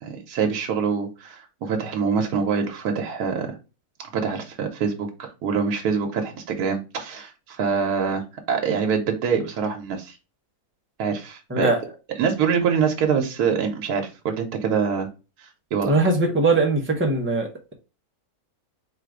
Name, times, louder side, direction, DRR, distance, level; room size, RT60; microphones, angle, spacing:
voice 1, 0.0-3.6 4.0-10.2 11.0-11.7 12.2-15.1 15.4-15.9, right 6 dB, 80° right, 1.3 m, -25 dB
voice 2, 15.9-17.7, right 2 dB, 15° right, 0.5 m, -21 dB
4.4 x 2.5 x 4.7 m
omnidirectional pair, 1.6 m